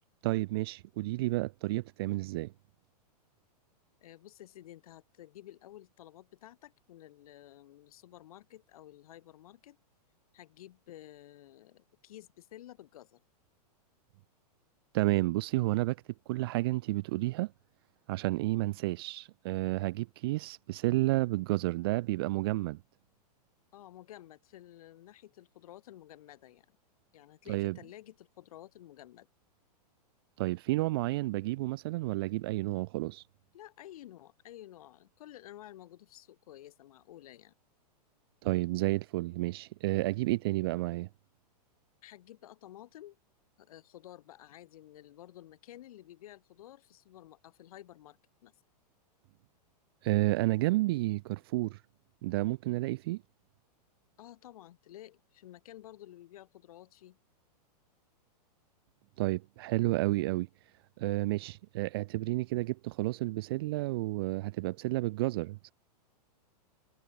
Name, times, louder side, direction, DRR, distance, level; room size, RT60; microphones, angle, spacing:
voice 1, 0.2-2.5 14.9-16.0 16.3-17.5 18.1-22.8 27.5-27.8 30.4-33.2 38.4-41.1 50.0-51.8 52.2-53.2 59.2-60.5 61.0-65.7, right 19 dB, 35° right, 0.4 m, -31 dB
voice 2, 4.0-9.8 10.3-13.2 23.7-26.8 27.1-29.3 33.5-37.5 42.0-43.2 43.6-48.5 54.2-57.2, left 13 dB, 60° left, 2.7 m, -52 dB
supercardioid pair, 160°, 21 cm